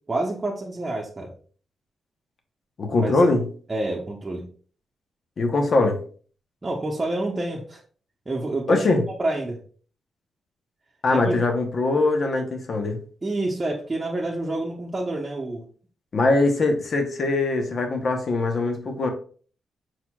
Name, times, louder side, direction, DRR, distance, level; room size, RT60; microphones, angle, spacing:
voice 1, 0.1-1.3 3.0-3.1 3.7-4.5 6.6-7.8 8.3-9.6 11.1-11.4 13.2-15.6, right 2 dB, 30° right, 0.9 m, -28 dB
voice 2, 2.8-3.5 5.4-6.0 8.7-9.1 11.0-13.0 16.1-19.1, left 2 dB, 60° left, 0.9 m, -22 dB
4.6 x 4.3 x 2.3 m
supercardioid pair, 55°, 0 cm